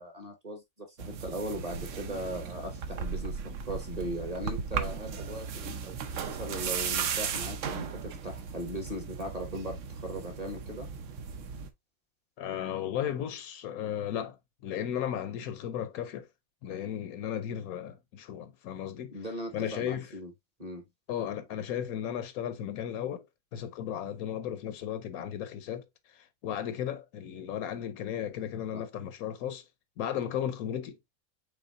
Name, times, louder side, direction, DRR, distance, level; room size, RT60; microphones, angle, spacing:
voice 1, 0.0-6.0 6.2-10.9 19.1-20.3 20.6-20.8 28.7-28.8, right 1 dB, 25° right, 1.3 m, -39 dB
sound 1, 1.0-11.7, right 6 dB, 60° right, 1.0 m, -36 dB
voice 2, 12.4-14.4 14.6-16.3 16.6-19.1 19.5-20.1 21.1-23.2 23.5-25.8 26.1-29.6 30.0-31.2, left 10 dB, 75° left, 1.1 m, -35 dB
5.6 x 3.8 x 2.5 m
omnidirectional pair, 1.6 m